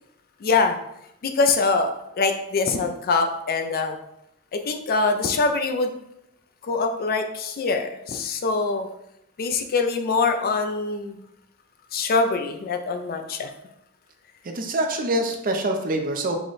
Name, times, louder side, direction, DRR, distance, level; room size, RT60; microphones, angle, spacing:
voice 1, 0.4-0.8 1.2-4.0 4.5-5.9 6.6-8.9 9.4-11.2 11.9-13.5, left 4 dB, 40° left, 6 dB, 0.4 m, -24 dB
voice 2, 14.4-16.4, right 1 dB, 40° right, 4 dB, 0.5 m, -25 dB
4.8 x 2.2 x 3.9 m, 0.79 s
head